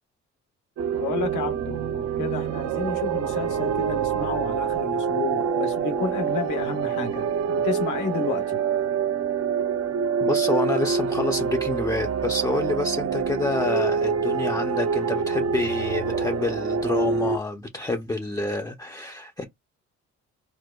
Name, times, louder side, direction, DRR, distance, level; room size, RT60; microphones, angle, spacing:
sound 1, 0.8-17.4, right 6 dB, 55° right, 0.5 m, -26 dB
voice 1, 0.9-8.6, left 5 dB, 80° left, 1.0 m, -31 dB
voice 2, 10.2-19.4, left 2 dB, 10° left, 0.5 m, -28 dB
4.5 x 2.1 x 2.3 m
cardioid pair, 90°, 30 cm